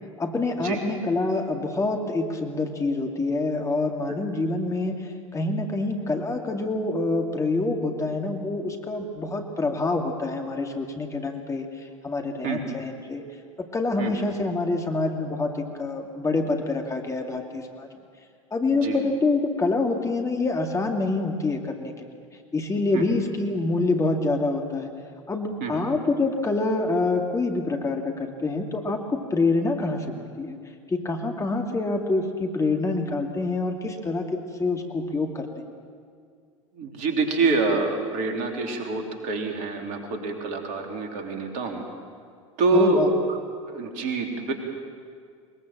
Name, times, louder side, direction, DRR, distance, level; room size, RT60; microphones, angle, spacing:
voice 1, 0.2-13.2 13.6-17.9 18.5-22.1 22.5-24.9 25.3-30.6 30.9-35.7 42.7-43.1, left 3 dB, 20° left, 3 dB, 2.2 m, -26 dB
voice 2, 36.8-41.8 42.6-43.0 43.7-44.5, right 3 dB, 50° right, 3 dB, 3.5 m, -26 dB
21.5 x 21.5 x 7.6 m, 2.1 s
figure-of-eight pair, 75°, 17 cm